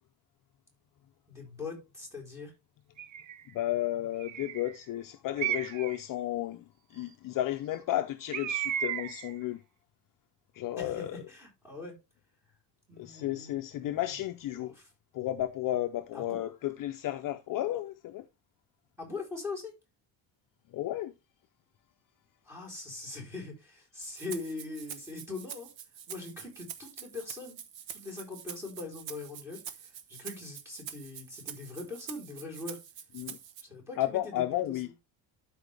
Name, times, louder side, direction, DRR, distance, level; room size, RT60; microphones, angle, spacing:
voice 1, 1.3-2.5 10.8-12.0 12.9-14.1 14.5-14.9 16.1-16.4 19.0-19.8 22.4-25.7 26.1-27.6 27.9-32.8 33.6-34.8, left 3 dB, 5° right, 3.9 m, -42 dB
Bird, 3.0-3.4 4.2-4.7 5.4-6.0 8.3-9.3, right 10 dB, 40° right, 0.5 m, -34 dB
voice 2, 3.5-9.6 10.5-11.2 13.0-14.7 15.1-18.2 20.7-21.1 33.1-33.4 34.0-34.9, left 14 dB, 45° left, 0.6 m, -33 dB
Rattle (instrument), 24.0-33.6, right 9 dB, 70° right, 1.3 m, -45 dB
12.0 x 4.9 x 3.4 m
cardioid pair, 180°, 46 cm